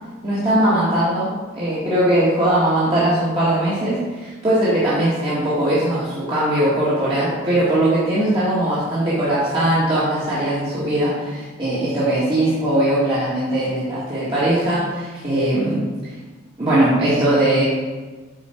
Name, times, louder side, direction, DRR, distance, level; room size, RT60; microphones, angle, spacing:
voice 1, 0.2-15.8 16.6-17.6, right 1 dB, 25° right, -11 dB, 1.9 m, -20 dB
8.4 x 5.1 x 4.5 m, 1.3 s
head